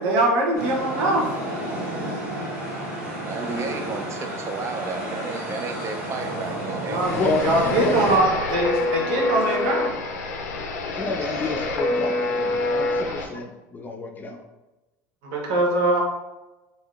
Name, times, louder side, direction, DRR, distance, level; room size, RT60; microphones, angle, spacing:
voice 1, 0.0-1.4 6.9-7.1 7.4-10.0 15.2-16.0, right 1 dB, 70° right, 0 dB, 0.8 m, -22 dB
sound 1, 0.5-8.2, right 1 dB, 85° right, 1.4 m, -31 dB
voice 2, 3.3-7.0 7.8-7.9, right 4 dB, 35° right, 5 dB, 0.5 m, -32 dB
sound 2, 7.0-13.3, left 2 dB, 90° left, 0.4 m, -27 dB
voice 3, 7.2-8.0 8.3-8.4 10.9-14.4, left 3 dB, 20° left, 3 dB, 0.5 m, -29 dB
3.4 x 2.7 x 2.4 m, 1.1 s
hypercardioid pair, 90°, 9 cm